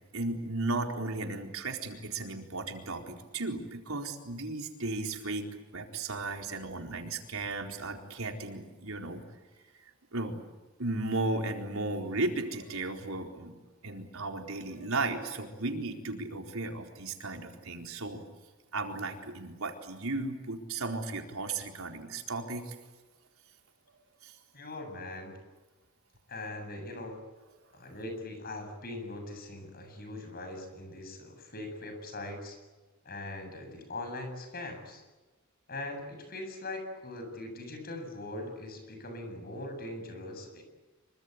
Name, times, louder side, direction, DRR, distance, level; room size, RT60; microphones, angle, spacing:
voice 1, 0.1-5.5 5.7-9.2 10.1-10.4 10.8-13.5 13.8-18.2 18.7-22.7 24.2-24.3, right 2 dB, 90° right, 3 dB, 4.3 m, -35 dB
voice 2, 24.5-25.4 26.3-27.2 27.7-32.6 33.0-35.0 35.7-40.6, left 2 dB, 45° left, 6 dB, 7.9 m, -41 dB
26.5 x 24.5 x 8.2 m, 1.2 s
head